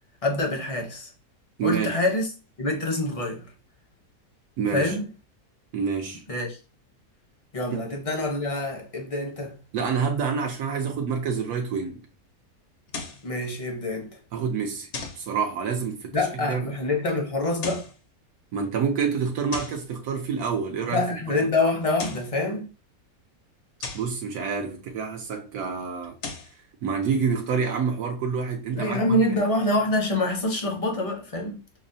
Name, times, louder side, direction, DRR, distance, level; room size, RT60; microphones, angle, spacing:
voice 1, 0.2-1.1 1.6-2.3 2.6-3.5 4.7-5.1 6.3-6.6 7.5-9.6 13.2-14.1 16.1-17.8 20.9-22.7 28.7-31.6, left 2 dB, 35° left, 0.6 m, -26 dB
voice 2, 1.6-2.0 4.6-5.0 5.7-6.2 7.7-7.8 9.7-12.1 14.3-14.9 15.1-16.7 18.5-21.0 23.9-26.2 26.8-29.4, right 6 dB, 75° right, 1.1 m, -27 dB
sound 1, 12.9-13.3 14.9-15.3 17.5-18.0 19.5-19.9 21.8-22.3 23.8-24.2 26.0-26.6, left 4 dB, 60° left, 0.8 m, -36 dB
6.0 x 2.0 x 2.6 m
omnidirectional pair, 1.6 m